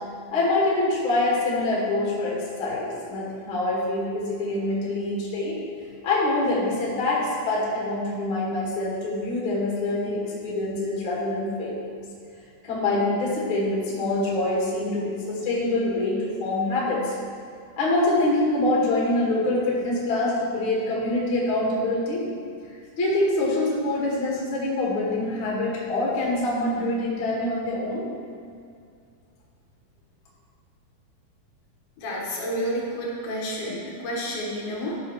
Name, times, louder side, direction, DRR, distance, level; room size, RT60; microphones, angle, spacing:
voice 1, 0.3-5.6 6.0-11.9 12.6-17.1 17.8-22.2 23.0-28.1, left 2 dB, 45° left, -5 dB, 2.2 m, -25 dB
voice 2, 32.0-35.0, equal, 85° left, -5 dB, 3.4 m, -30 dB
12.5 x 6.2 x 3.1 m, 2.3 s
omnidirectional pair, 4.1 m